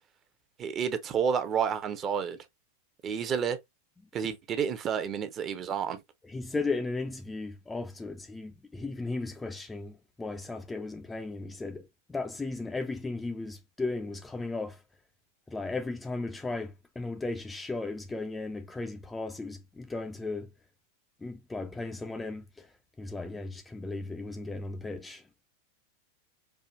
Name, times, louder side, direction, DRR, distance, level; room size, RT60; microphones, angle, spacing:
voice 1, 0.6-2.4 3.0-3.6 4.1-6.0, right 7 dB, 30° right, 0.6 m, -30 dB
voice 2, 6.2-14.8 15.5-20.5 21.2-25.3, left 3 dB, 10° left, 0.4 m, -36 dB
4.7 x 2.4 x 2.3 m
figure-of-eight pair, 90°, 0 cm